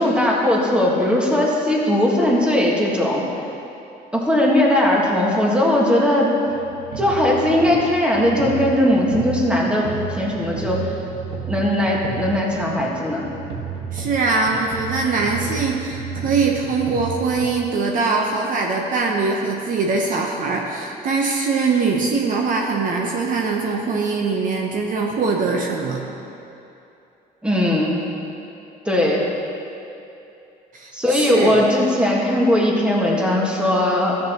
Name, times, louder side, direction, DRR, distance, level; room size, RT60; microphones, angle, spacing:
voice 1, 0.0-3.2 4.1-6.3 7.0-10.9 11.5-13.2 27.4-28.0 28.8-29.2 30.9-34.2, left 1 dB, 5° right, -3 dB, 1.6 m, -19 dB
sound 1, 6.5-17.5, right 6 dB, 75° right, 1.6 m, -32 dB
voice 2, 13.9-26.0 30.7-31.6, right 4 dB, 50° right, 0 dB, 0.9 m, -22 dB
13.0 x 8.4 x 3.0 m, 2.8 s
cardioid pair, 110°, 17 cm